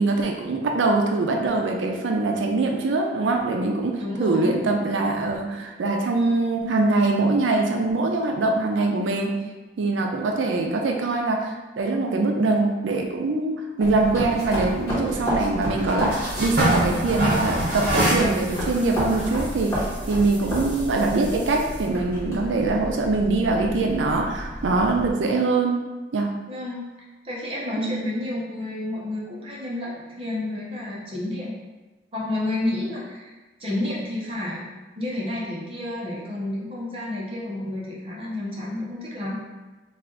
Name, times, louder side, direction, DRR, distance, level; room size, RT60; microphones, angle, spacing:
voice 1, 0.0-9.4 9.8-25.8 26.1-26.3 27.8-28.1, right 3 dB, 90° right, 2 dB, 0.4 m, -23 dB
voice 2, 4.0-4.5 26.5-26.9 27.2-31.5 32.1-33.3 33.6-34.6 34.9-39.4, left 1 dB, 30° right, -5 dB, 0.8 m, -30 dB
sound 1, 13.8-25.0, equal, 20° left, 1.2 m, -32 dB
sound 2, 14.0-25.1, right 1 dB, 60° right, 1.1 m, -29 dB
3.3 x 2.4 x 3.7 m, 1.2 s
head